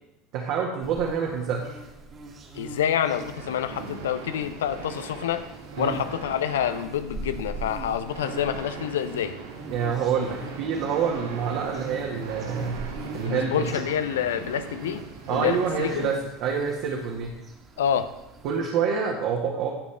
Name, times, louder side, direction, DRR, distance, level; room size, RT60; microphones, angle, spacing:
voice 1, 0.3-1.8 5.8-6.0 9.6-13.7 15.3-17.3 18.4-19.7, right 6 dB, 55° right, -1 dB, 1.7 m, -27 dB
sound 1, 0.8-18.6, right 3 dB, 35° right, 2.0 m, -42 dB
voice 2, 2.5-5.4 5.8-9.3 13.2-15.0 15.3-16.1 17.8-18.1, left 9 dB, 70° left, 11 dB, 0.7 m, -27 dB
sound 2, 3.0-16.1, right 5 dB, 70° right, 1.7 m, -40 dB
16.5 x 7.1 x 3.4 m, 0.95 s
figure-of-eight pair, 70°, 0 cm